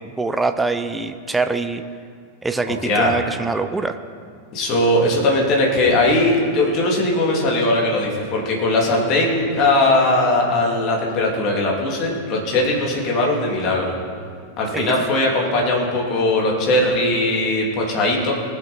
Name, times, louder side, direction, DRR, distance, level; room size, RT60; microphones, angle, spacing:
voice 1, 0.0-1.8 2.4-4.0 14.7-14.9, right 3 dB, 10° right, 9 dB, 0.6 m, -24 dB
voice 2, 2.8-3.1 4.5-13.9 14.6-18.3, left 2 dB, 40° left, -2 dB, 2.9 m, -19 dB
20.0 x 7.9 x 4.4 m, 2.2 s
figure-of-eight pair, 90°, 0 cm